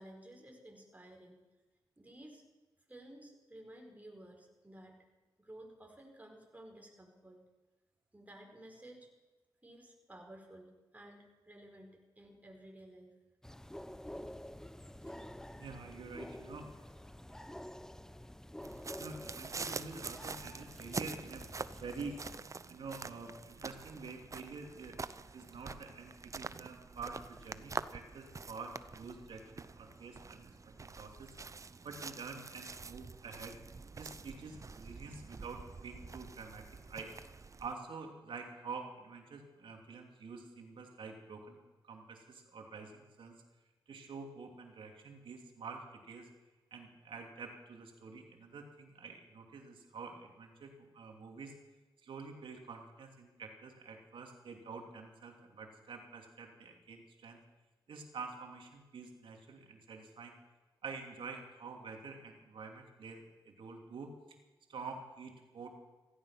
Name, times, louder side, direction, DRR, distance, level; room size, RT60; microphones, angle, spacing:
voice 1, 0.0-1.4 2.0-2.4 2.9-5.0 5.4-7.4 8.1-9.1 9.6-11.9 12.1-13.1, right 1 dB, 15° right, 1 dB, 4.9 m, -54 dB
sound 1, 13.4-22.4, left 1 dB, 5° left, 0.8 m, -49 dB
voice 2, 15.6-16.7 19.0-22.2 22.7-25.0 25.3-31.3 31.8-33.6 34.0-37.2 37.6-43.4 43.9-46.3 46.7-51.5 52.0-57.4 57.9-60.3 60.8-64.1 64.7-65.7, right 4 dB, 75° right, 3 dB, 3.0 m, -48 dB
sound 2, 18.6-37.7, right 4 dB, 35° right, 0.7 m, -46 dB
16.0 x 15.0 x 6.0 m, 1.2 s
cardioid pair, 60°, 9 cm